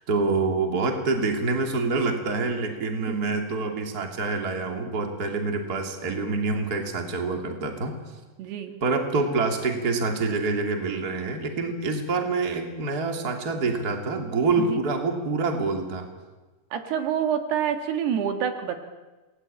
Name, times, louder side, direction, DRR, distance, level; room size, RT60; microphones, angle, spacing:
voice 1, 0.1-7.9 8.8-16.1, right 3 dB, 25° right, 4 dB, 2.9 m, -26 dB
voice 2, 8.4-8.8 14.6-14.8 16.7-18.7, right 8 dB, 75° right, 6 dB, 3.7 m, -27 dB
28.0 x 20.0 x 8.8 m, 1.2 s
omnidirectional pair, 4.9 m